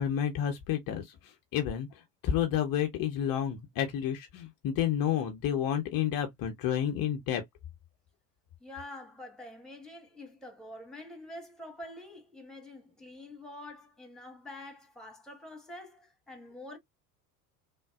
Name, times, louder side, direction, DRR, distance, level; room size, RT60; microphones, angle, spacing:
voice 1, 0.0-1.9 2.2-7.4, left 9 dB, 45° left, 0.9 m, -30 dB
voice 2, 8.6-16.8, left 1 dB, ahead, 1.5 m, -46 dB
3.5 x 2.2 x 2.3 m
hypercardioid pair, 65°, 46 cm